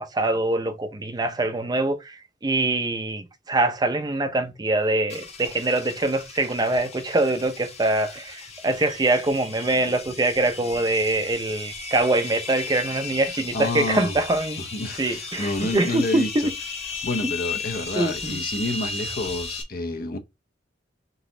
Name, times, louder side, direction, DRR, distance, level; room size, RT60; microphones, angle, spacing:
voice 1, 0.0-14.6 15.0-16.5 18.0-18.4, right 2 dB, 20° right, 0.5 m, -24 dB
sound 1, 5.1-19.6, left 4 dB, 35° left, 1.1 m, -36 dB
voice 2, 13.3-14.2 14.6-16.5 17.0-20.2, left 2 dB, 50° left, 0.7 m, -29 dB
3.9 x 2.8 x 3.7 m
head